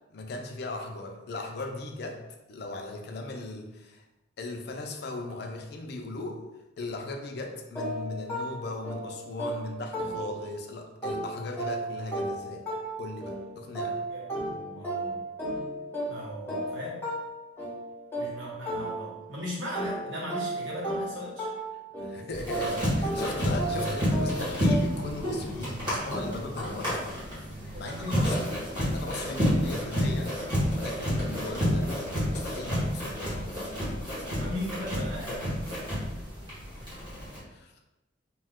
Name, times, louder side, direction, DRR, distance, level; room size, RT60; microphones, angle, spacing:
voice 1, 0.1-2.2 2.5-4.0 4.4-6.4 6.8-12.7 13.0-14.0 22.0-26.9 27.8-30.3 30.7-34.1 37.2-37.7, left 2 dB, 55° left, 3 dB, 0.4 m, -38 dB
sound 1, 7.7-10.6 11.0-19.4 19.7-25.2, right 1 dB, 10° left, 0.7 m, -35 dB
voice 2, 14.1-15.2 16.1-17.0 18.1-21.5 27.7-28.5 34.2-35.5, left 1 dB, 70° right, -5 dB, 1.0 m, -38 dB
sound 2, 22.3-37.4, equal, 25° right, 1.2 m, -30 dB
2.7 x 2.2 x 3.5 m, 0.97 s
head